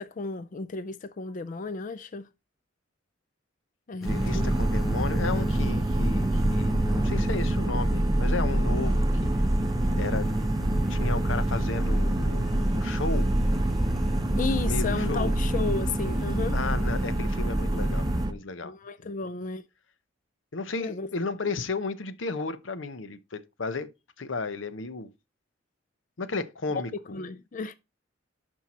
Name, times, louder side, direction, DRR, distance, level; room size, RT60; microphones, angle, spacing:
voice 1, 0.0-2.3 3.9-4.5 4.8-4.9 14.4-16.6 18.6-19.6 20.8-21.1 27.1-27.7, left 4 dB, 45° left, 0.4 m, -33 dB
voice 2, 4.0-9.3 10.0-10.3 10.9-12.5 12.7-13.3 14.6-15.4 16.5-18.8 19.0-19.1 20.5-23.9 24.2-25.1 26.2-27.2, left 3 dB, 85° left, 0.8 m, -34 dB
sound 1, 4.0-18.3, right 1 dB, ahead, 1.2 m, -36 dB
sound 2, 4.1-18.3, right 1 dB, 20° right, 0.6 m, -26 dB
11.5 x 4.6 x 4.2 m
head